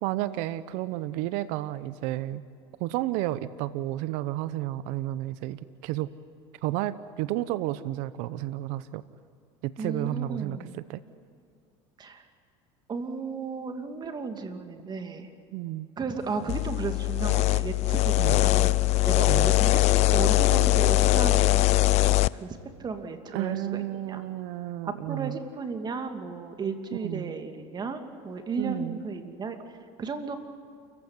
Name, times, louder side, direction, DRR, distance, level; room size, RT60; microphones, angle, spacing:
voice 1, 0.0-2.4 2.8-6.1 6.6-9.0 9.6-11.0 15.5-15.9 18.2-18.4 19.3-19.5 23.3-25.4 27.0-27.3 28.6-29.0, right 15 dB, 70° right, 15 dB, 0.9 m, -32 dB
voice 2, 9.8-10.7 12.0-12.2 12.9-15.3 16.0-19.8 20.1-24.2 24.8-30.4, right 4 dB, 35° right, 6 dB, 2.7 m, -35 dB
sound 1, 16.5-22.3, left 19 dB, 55° left, 0.5 m, -21 dB
28.5 x 15.5 x 9.9 m, 2.3 s
supercardioid pair, 95°, 13 cm